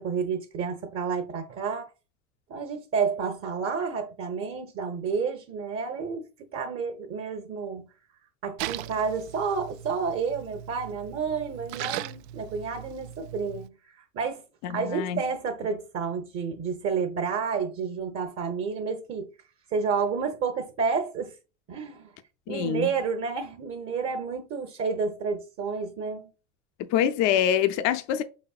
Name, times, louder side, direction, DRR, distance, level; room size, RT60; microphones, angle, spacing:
voice 1, 0.0-1.9 2.5-6.3 6.5-7.9 8.4-13.7 14.1-14.4 14.7-19.3 19.7-21.3 21.7-22.1 22.5-26.3, right 5 dB, 40° right, 1.0 m, -30 dB
Splash splatter, 8.6-13.7, right 13 dB, 65° right, 0.5 m, -39 dB
voice 2, 14.6-15.2 22.5-22.9 26.9-28.2, left 10 dB, 50° left, 0.6 m, -25 dB
5.2 x 4.3 x 2.4 m
hypercardioid pair, 95°, 36 cm